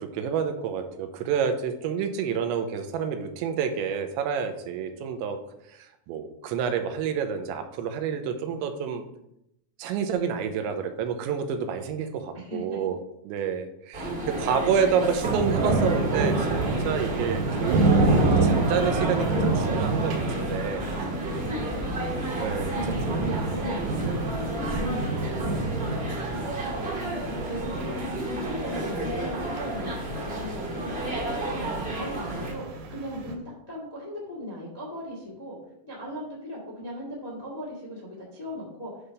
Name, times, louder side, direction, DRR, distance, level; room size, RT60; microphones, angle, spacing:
voice 1, 0.0-5.4 5.7-9.0 9.8-13.0 13.2-16.6 16.8-20.8 22.4-22.7, right 7 dB, 90° right, 7 dB, 3.0 m, -29 dB
voice 2, 12.3-12.8 14.9-15.0 22.7-26.9 27.4-31.6 31.9-33.4 33.7-35.5 35.8-39.1, equal, 25° left, -4 dB, 0.8 m, -38 dB
sound 1, 13.9-32.5, right 1 dB, 45° right, 0.7 m, -32 dB
sound 2, 15.2-33.3, right 3 dB, 70° right, 3.0 m, -28 dB
9.9 x 3.4 x 5.4 m, 0.81 s
omnidirectional pair, 5.3 m